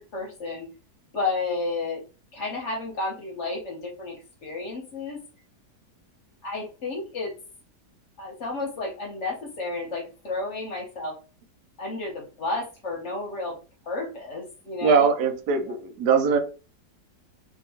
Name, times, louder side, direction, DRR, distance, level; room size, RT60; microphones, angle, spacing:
voice 1, 0.1-0.7 1.1-2.0 2.3-4.2 4.4-5.2 6.4-7.3 8.2-11.2 11.8-13.6 13.9-15.1 15.5-15.7, left 3 dB, 55° left, 1.0 m, -31 dB
voice 2, 14.8-16.4, right 5 dB, 80° right, 1.2 m, -21 dB
2.8 x 2.8 x 2.8 m
omnidirectional pair, 1.8 m